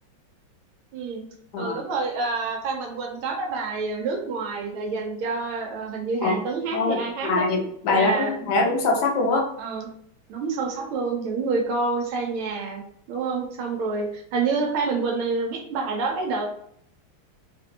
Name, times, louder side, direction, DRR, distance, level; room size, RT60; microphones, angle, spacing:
voice 1, 0.9-1.3 1.6-7.5 7.9-8.3 9.6-9.9 10.3-12.8 13.1-16.5, right 4 dB, 85° right, 1 dB, 1.6 m, -28 dB
voice 2, 6.7-9.5, left 3 dB, 65° left, 1 dB, 1.1 m, -23 dB
3.8 x 2.5 x 2.7 m, 0.66 s
omnidirectional pair, 2.2 m